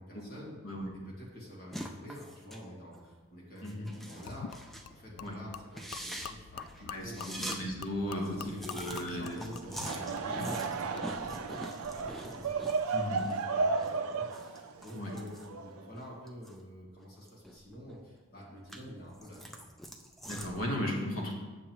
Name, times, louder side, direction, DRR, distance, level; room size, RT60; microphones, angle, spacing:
voice 1, 0.0-0.6 1.0-4.5 4.8-7.3 8.0-12.6 13.1-19.7, equal, 45° left, -5 dB, 1.8 m, -48 dB
sound 1, 1.7-2.6 2.9-3.1 3.6-4.9 5.2-5.3 5.7-7.6 7.9-8.0 8.2-13.4 13.7-16.6 17.0-18.0 18.4-20.7, equal, ahead, 0.3 m, -44 dB
Gurgling / Liquid, 4.3-11.1, left 7 dB, 85° left, 0.3 m, -47 dB
voice 2, 6.8-8.4 8.6-9.4 10.4-10.5 12.9-13.3 14.9-15.1 20.3-21.3, left 1 dB, 60° left, -1 dB, 1.4 m, -36 dB
Laughter / Crowd, 9.6-16.1, right 4 dB, 75° right, 0.5 m, -34 dB
7.2 x 7.2 x 3.0 m, 1.3 s
head